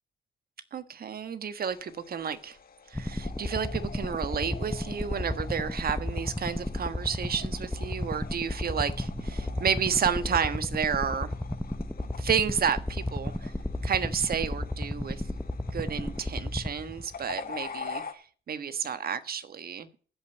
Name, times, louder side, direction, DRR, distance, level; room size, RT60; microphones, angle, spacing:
voice 1, 0.7-2.6 2.9-11.3 12.2-13.5 13.8-15.2 15.6-19.9, right 7 dB, 50° right, 1.4 m, -31 dB
sound 1, 1.7-18.1, left 6 dB, 50° left, 1.8 m, -46 dB
sound 2, 2.9-17.3, left 1 dB, 5° left, 0.9 m, -33 dB
sound 3, 9.0-11.5 11.8-11.9 12.2-12.3 12.5-12.6 13.9-14.0 15.7-16.5, right 5 dB, 70° right, 5.5 m, -51 dB
15.0 x 5.5 x 8.3 m
cardioid pair, 90°, 20 cm